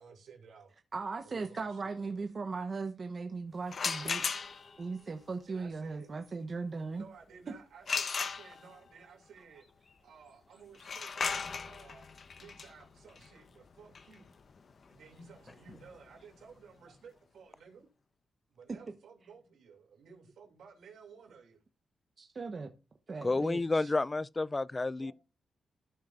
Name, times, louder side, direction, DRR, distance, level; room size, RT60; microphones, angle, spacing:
voice 1, 0.0-0.8 1.2-2.3 5.5-6.5 6.9-9.7 10.0-14.3 14.9-17.9 18.5-21.6 25.0-25.1, right 5 dB, 85° right, 2.5 m, -55 dB
voice 2, 0.9-4.5 4.8-7.1 18.7-18.8 22.2-22.7 23.1-23.9, right 4 dB, 45° right, 1.0 m, -38 dB
sound 1, 3.7-4.8 7.9-8.9 10.7-16.4, left 5 dB, 50° left, 0.8 m, -37 dB
voice 3, 23.2-25.1, left 3 dB, 25° left, 0.3 m, -30 dB
14.0 x 5.5 x 2.5 m
cardioid pair, 85°, 0 cm